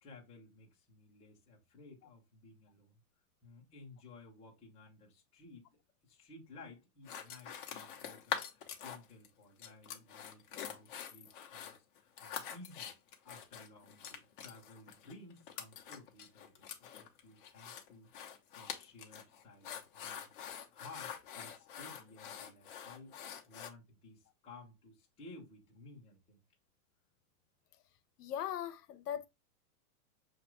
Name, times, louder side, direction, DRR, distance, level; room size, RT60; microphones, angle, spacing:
voice 1, 0.0-3.0 3.4-5.8 6.0-12.9 13.2-18.1 18.5-23.1 23.5-26.4, left 3 dB, 15° left, 1.0 m, -56 dB
sound 1, 7.0-9.3 9.6-23.7, left 8 dB, 35° left, 0.7 m, -45 dB
voice 2, 28.2-29.3, left 10 dB, 90° left, 0.8 m, -39 dB
6.6 x 2.6 x 3.1 m
supercardioid pair, 175°, 45 cm